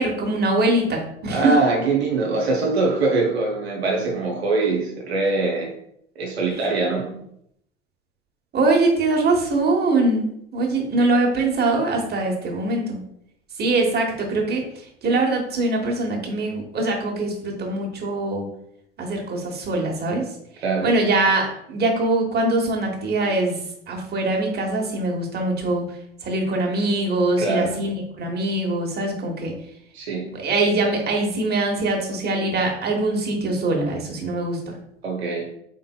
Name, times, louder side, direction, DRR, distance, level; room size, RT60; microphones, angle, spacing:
voice 1, 0.0-1.5 6.5-6.7 8.5-13.0 13.6-18.4 19.0-20.3 20.8-23.6 23.9-29.5 30.3-34.7, right 2 dB, 30° right, 1 dB, 1.2 m, -23 dB
voice 2, 1.3-5.7 6.2-7.1 20.6-20.9 27.4-27.7 29.9-30.3 35.0-35.5, right 3 dB, 80° right, 1 dB, 0.7 m, -23 dB
3.8 x 3.8 x 2.3 m, 0.74 s
figure-of-eight pair, 70°, 31 cm